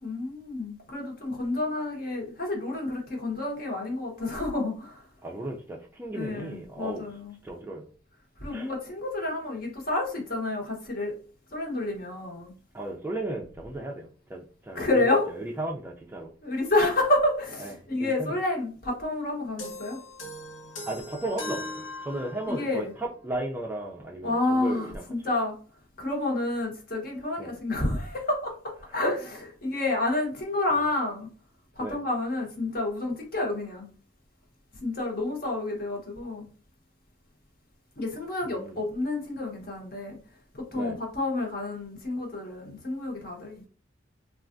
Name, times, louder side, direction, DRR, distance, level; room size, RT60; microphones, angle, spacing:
voice 1, 0.0-5.1 6.1-7.4 8.4-11.1 11.5-12.5 14.7-15.3 16.4-20.0 22.5-22.9 24.2-25.6 26.0-28.5 28.9-31.3 31.8-33.9 34.8-36.5 38.0-40.2 40.5-43.7, left 2 dB, 50° left, 0 dB, 1.0 m, -29 dB
voice 2, 5.2-7.0 7.4-7.9 8.5-8.7 12.7-15.0 15.6-16.3 17.6-17.7 18.0-18.4 20.9-21.7 22.0-25.0 27.4-27.5 31.8-32.0 38.4-38.8 40.7-40.9, right 1 dB, 10° right, 0 dB, 0.3 m, -35 dB
sound 1, 19.6-22.8, left 1 dB, 90° left, 0.9 m, -39 dB
3.3 x 2.3 x 2.5 m, 0.40 s
head